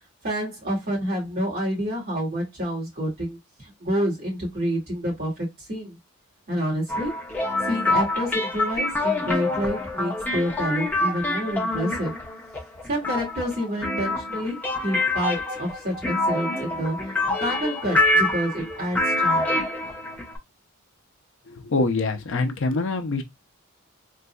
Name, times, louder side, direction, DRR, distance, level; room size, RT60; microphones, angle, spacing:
voice 1, 0.2-6.0 6.5-7.1 7.6-12.1 12.9-14.6 14.8-17.0 17.4-19.6, equal, 45° right, 2.1 m, -28 dB
sound 1, 6.9-20.4, left 2 dB, 10° left, 0.8 m, -26 dB
voice 2, 21.5-23.2, left 3 dB, 60° left, 0.6 m, -25 dB
3.9 x 2.6 x 2.2 m
head